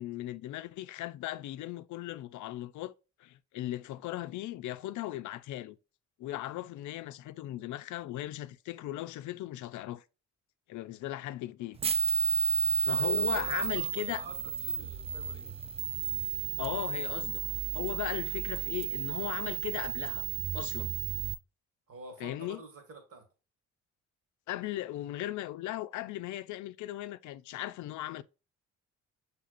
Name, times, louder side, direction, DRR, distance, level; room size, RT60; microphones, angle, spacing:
voice 1, 0.0-2.9 3.2-5.8 6.2-10.0 10.7-11.8 12.8-14.2 16.6-17.4 17.7-20.3 20.5-20.9 22.2-22.6 24.5-28.2, left 15 dB, 75° left, 0.5 m, -38 dB
sound 1, 11.8-21.3, right 5 dB, 20° right, 0.3 m, -32 dB
voice 2, 12.8-15.6 21.9-23.3, right 3 dB, 50° right, 1.6 m, -47 dB
5.7 x 3.4 x 2.4 m
cardioid pair, 90°, 30 cm